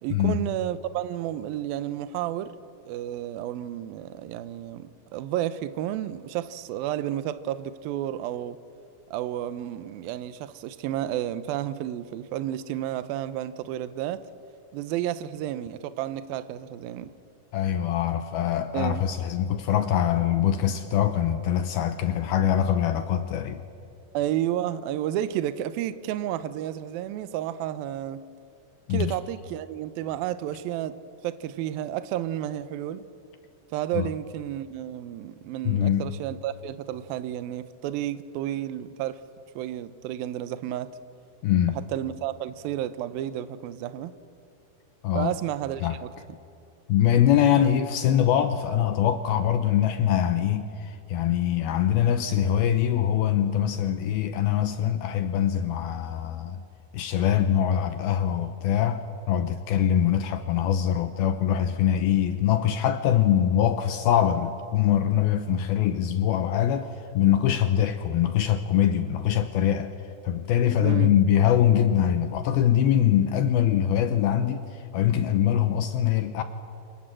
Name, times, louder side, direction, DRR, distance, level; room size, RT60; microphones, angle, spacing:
voice 1, 0.0-2.5 2.9-8.6 9.1-14.2 14.7-17.1 18.7-19.0 24.1-28.2 28.9-31.0 31.2-33.0 33.7-39.2 39.6-40.9 41.9-44.2 45.1-46.0 47.5-47.7 70.8-71.1, right 12 dB, 75° right, 2.4 m, -31 dB
voice 2, 17.5-23.6 28.9-29.1 34.0-34.1 35.6-36.1 41.4-41.8 45.0-45.3 45.8-46.0 46.9-56.6 56.9-69.9 70.2-76.4, left 10 dB, 75° left, 2.6 m, -23 dB
28.5 x 26.5 x 7.7 m
omnidirectional pair, 4.7 m